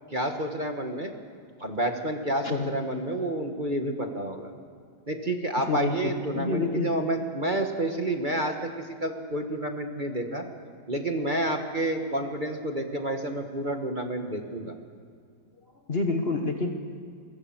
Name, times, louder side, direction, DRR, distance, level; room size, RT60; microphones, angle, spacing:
voice 1, 0.1-1.1 1.6-4.5 5.1-10.4 10.9-14.7, right 1 dB, 30° right, 4 dB, 1.4 m, -29 dB
voice 2, 5.7-6.9 15.9-16.7, left 3 dB, 35° left, 4 dB, 1.4 m, -28 dB
23.5 x 16.5 x 7.3 m, 2.2 s
omnidirectional pair, 2.0 m